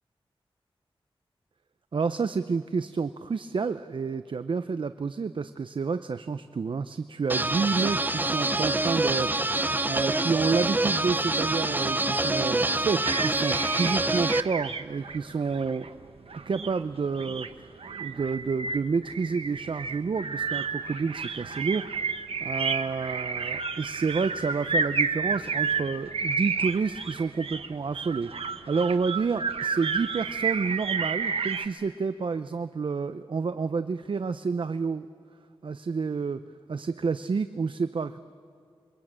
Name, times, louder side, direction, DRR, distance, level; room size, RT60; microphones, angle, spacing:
voice 1, 1.9-15.9 16.5-17.7 18.0-21.9 22.4-28.3 28.7-35.1 35.6-36.4 36.7-38.2, right 5 dB, 60° right, 11 dB, 0.7 m, -29 dB
sound 1, 7.3-14.4, right 2 dB, 20° right, 0.7 m, -26 dB
sound 2, 13.0-31.7, right 5 dB, 80° right, 1.2 m, -31 dB
28.5 x 23.5 x 8.8 m, 2.4 s
wide cardioid pair, 115°, 10 cm